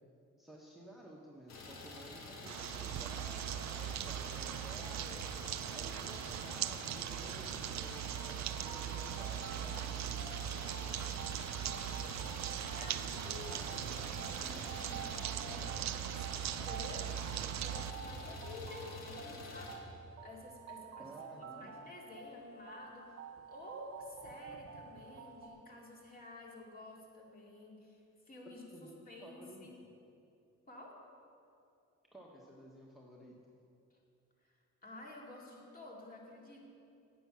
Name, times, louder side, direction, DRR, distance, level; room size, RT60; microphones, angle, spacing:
voice 1, 0.4-5.3 5.7-8.1 8.6-10.2 21.0-21.7 28.7-29.7 32.1-33.4, right 1 dB, ahead, -2 dB, 1.2 m, -53 dB
Idling, 1.5-19.8, left 2 dB, 65° left, 1.8 m, -48 dB
sound 1, 2.5-17.9, right 11 dB, 65° right, 0.5 m, -40 dB
sound 2, 7.8-25.5, right 6 dB, 50° right, 0.9 m, -51 dB
voice 2, 11.1-19.9 20.2-29.8 30.7-31.0 33.9-34.0 34.4-34.5 34.8-36.7, left 2 dB, 30° left, -2 dB, 2.5 m, -52 dB
9.7 x 8.7 x 6.1 m, 2.6 s
cardioid pair, 90°, 30 cm